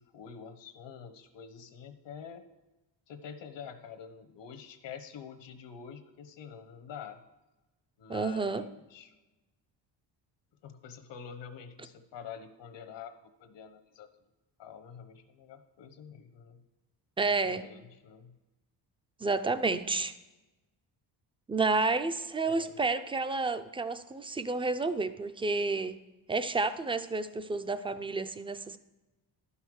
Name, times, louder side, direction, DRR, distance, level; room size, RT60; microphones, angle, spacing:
voice 1, 0.0-2.4 3.1-7.2 8.0-9.1 10.6-14.1 14.6-16.6 17.4-18.3 22.4-22.7, left 7 dB, 80° left, 9 dB, 1.1 m, -47 dB
voice 2, 8.1-8.6 17.2-17.6 19.2-20.1 21.5-26.0 26.3-28.8, right 3 dB, 15° right, 11 dB, 0.4 m, -30 dB
11.5 x 5.6 x 6.3 m, 1.1 s
cardioid pair, 135°, 43 cm